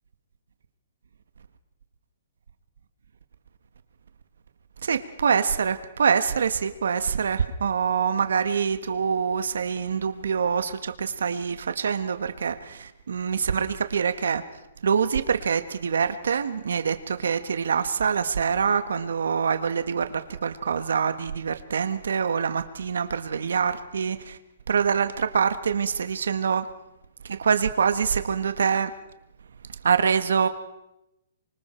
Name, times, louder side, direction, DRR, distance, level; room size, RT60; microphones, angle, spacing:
voice 1, 4.8-14.4 14.8-24.4 24.7-26.7 27.2-29.0 29.7-30.5, right 6 dB, 85° right, 10 dB, 1.4 m, -25 dB
27.0 x 24.5 x 4.4 m, 0.89 s
hypercardioid pair, 175°, 0 cm